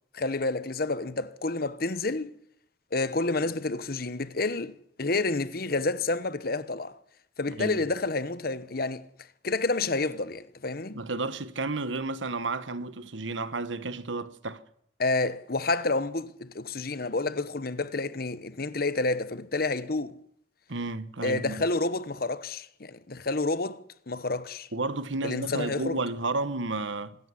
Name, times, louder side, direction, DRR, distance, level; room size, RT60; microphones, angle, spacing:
voice 1, 0.1-2.3 2.9-7.0 7.4-9.1 9.4-11.0 15.0-20.1 21.2-23.8 24.1-24.7 25.2-26.0, left 3 dB, 55° left, 1.1 m, -29 dB
voice 2, 10.9-14.6 20.7-21.7 24.7-27.2, right 3 dB, 90° right, 1.4 m, -32 dB
25.0 x 14.0 x 9.8 m
head